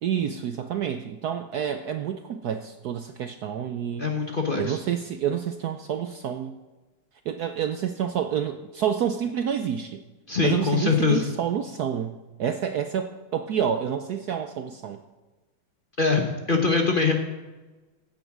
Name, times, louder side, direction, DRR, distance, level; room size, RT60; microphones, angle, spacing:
voice 1, 0.0-4.1 4.5-6.5 7.3-10.0 10.4-15.0, right 8 dB, 70° right, 7 dB, 1.0 m, -28 dB
voice 2, 4.0-4.8 10.3-11.3 16.0-17.1, left 4 dB, 35° left, 2 dB, 1.0 m, -23 dB
16.0 x 8.6 x 4.9 m, 1.2 s
omnidirectional pair, 2.2 m